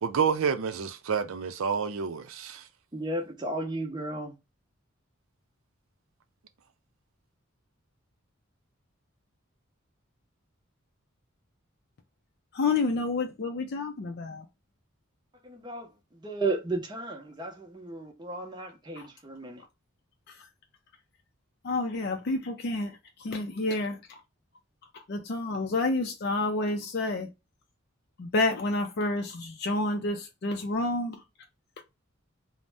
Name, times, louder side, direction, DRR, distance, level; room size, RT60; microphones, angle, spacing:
voice 1, 0.0-2.6, right 6 dB, 80° right, 0.5 m, -29 dB
voice 2, 2.9-4.3 15.4-15.9 16.2-19.6, right 2 dB, 20° right, 0.7 m, -34 dB
voice 3, 12.5-14.4 19.0-19.1 21.6-24.0 25.1-27.3 28.2-31.2 31.8-31.9, left 2 dB, 50° left, 0.4 m, -29 dB
2.6 x 2.1 x 3.3 m
head